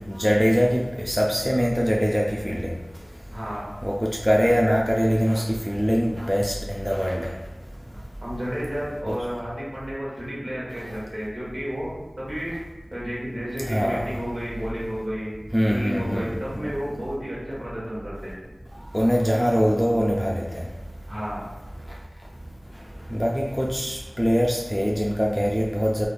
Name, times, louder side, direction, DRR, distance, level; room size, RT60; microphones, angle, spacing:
voice 1, 0.1-2.7 3.8-7.3 9.1-9.2 13.7-14.1 15.5-16.7 18.9-20.5 23.1-26.1, equal, ahead, -2 dB, 0.3 m, -23 dB
voice 2, 3.3-3.7 8.2-12.6 12.9-15.3 15.7-18.3 21.1-21.5, equal, 50° right, -6 dB, 1.2 m, -32 dB
3.7 x 2.5 x 2.3 m, 1.1 s
wide cardioid pair, 45°, 0 cm